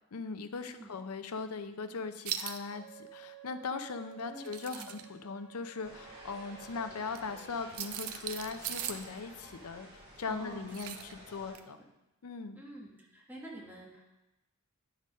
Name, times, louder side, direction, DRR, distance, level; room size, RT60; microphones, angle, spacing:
voice 1, 0.1-11.8 12.2-12.6, left 4 dB, 85° left, 9 dB, 0.6 m, -39 dB
sound 1, 2.3-2.6 4.3-5.1 7.1-7.2 7.7-9.1 10.7-11.1 11.5-11.6, right 10 dB, 80° right, 0.5 m, -39 dB
Wind instrument woodwind instrument, 2.7-7.3, right 10 dB, 10° left, 1.1 m, -54 dB
voice 2, 4.3-5.0 10.2-10.7 11.5-11.9 12.6-14.0, right 1 dB, 10° right, -3 dB, 1.3 m, -48 dB
sound 2, 5.8-11.5, equal, 25° right, 2.1 m, -52 dB
9.0 x 4.0 x 5.2 m, 0.97 s
head